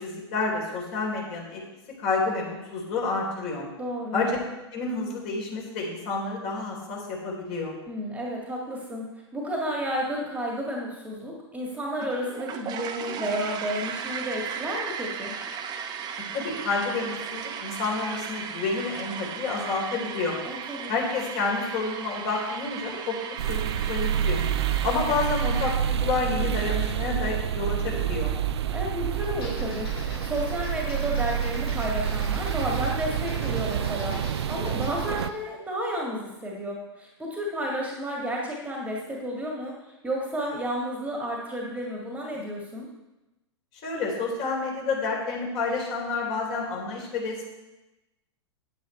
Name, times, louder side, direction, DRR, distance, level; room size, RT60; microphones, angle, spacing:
voice 1, 0.0-1.6 2.0-3.6 4.1-4.4 4.7-7.7 16.3-20.4 20.9-24.4 24.8-28.3 43.8-47.4, left 3 dB, 40° left, -2 dB, 3.9 m, -29 dB
voice 2, 3.8-4.2 7.9-9.1 9.3-15.3 20.4-21.0 28.7-34.2 34.5-42.9, equal, 10° right, -2 dB, 1.9 m, -32 dB
sound 1, 12.0-25.8, right 7 dB, 30° right, 0.9 m, -36 dB
sound 2, 23.4-35.3, right 9 dB, 65° right, 0.5 m, -28 dB
sound 3, 29.2-35.4, left 2 dB, 60° left, 3.5 m, -42 dB
9.3 x 8.9 x 4.4 m, 1.0 s
figure-of-eight pair, 100°, 15 cm